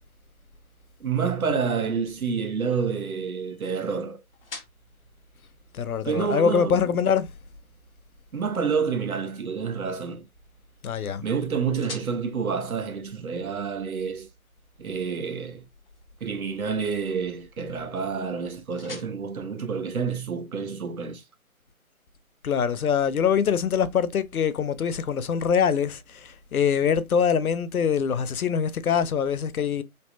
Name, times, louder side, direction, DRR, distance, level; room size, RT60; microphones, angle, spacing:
voice 1, 1.0-4.2 6.0-6.9 8.3-10.2 11.2-14.3 14.8-15.6 16.2-21.2, right 6 dB, 75° right, 0.7 m, -28 dB
sound 1, 1.8-20.6, left 2 dB, 40° left, 0.9 m, -51 dB
voice 2, 5.7-7.3 10.8-11.2 22.4-29.8, left 7 dB, 75° left, 0.6 m, -24 dB
3.2 x 2.0 x 2.8 m
figure-of-eight pair, 155°, 44 cm